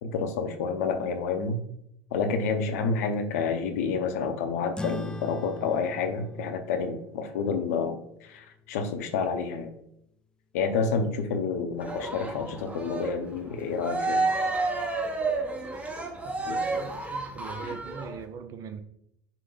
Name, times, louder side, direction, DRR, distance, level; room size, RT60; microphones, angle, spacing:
voice 1, 0.0-1.6 2.1-9.7 10.5-14.2 16.5-16.6, left 5 dB, 85° left, 7 dB, 0.7 m, -29 dB
sound 1, 4.8-9.6, left 2 dB, 10° left, 0.4 m, -41 dB
Cheering, 11.8-18.2, right 3 dB, 15° right, 1.1 m, -31 dB
voice 2, 16.7-18.8, right 6 dB, 45° right, 9 dB, 0.6 m, -40 dB
5.9 x 2.2 x 3.9 m, 0.75 s
supercardioid pair, 110°, 8 cm